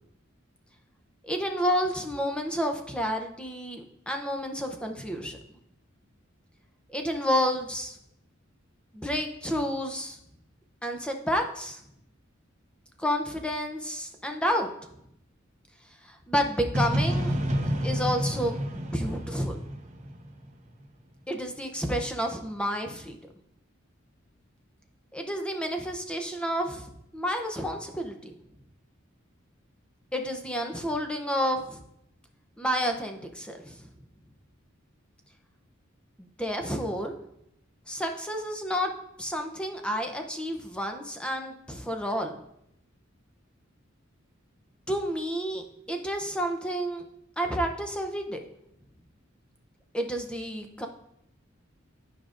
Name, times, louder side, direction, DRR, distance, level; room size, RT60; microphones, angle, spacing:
voice 1, 1.2-5.4 6.9-8.0 8.9-10.2 10.8-11.8 13.0-14.7 16.0-17.3 17.6-19.6 21.3-23.2 25.1-28.3 30.1-31.8 32.6-33.9 36.2-37.2 37.9-38.9 39.2-42.4 44.9-47.0 47.4-48.4 49.9-50.9, equal, 5° left, 4 dB, 0.6 m, -30 dB
sound 1, 16.7-20.6, equal, 35° right, 0.9 m, -29 dB
11.5 x 5.0 x 2.5 m, 0.77 s
head